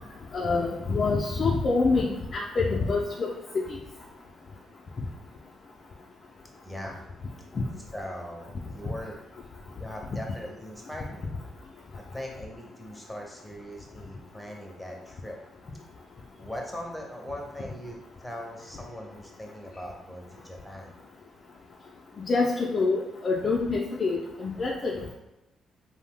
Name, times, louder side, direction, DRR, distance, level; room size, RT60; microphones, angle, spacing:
voice 1, 0.3-3.3 22.3-25.1, left 3 dB, 45° left, -2 dB, 0.4 m, -26 dB
voice 2, 6.6-7.0 7.9-9.2 9.8-11.2 12.0-15.4 16.4-21.0, equal, 5° left, 0 dB, 0.6 m, -40 dB
2.6 x 2.0 x 3.5 m, 0.92 s
cardioid pair, 90°, 0 cm